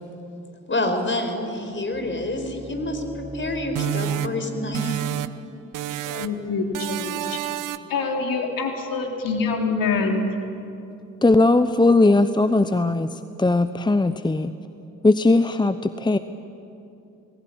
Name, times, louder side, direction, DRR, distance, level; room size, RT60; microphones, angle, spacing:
voice 1, 0.7-5.0, left 1 dB, 30° left, 5 dB, 5.0 m, -27 dB
sound 1, 1.6-7.5, equal, 15° right, 1.9 m, -40 dB
sound 2, 3.8-5.5 5.7-6.4 6.7-8.0, right 13 dB, 50° right, 0.9 m, -29 dB
voice 2, 6.1-7.4 7.9-10.3, left 4 dB, 55° left, 3 dB, 3.7 m, -25 dB
voice 3, 11.2-14.5 15.0-16.2, left 2 dB, 10° left, 12 dB, 0.9 m, -19 dB
28.0 x 20.0 x 9.0 m, 2.8 s
figure-of-eight pair, 45°, 40 cm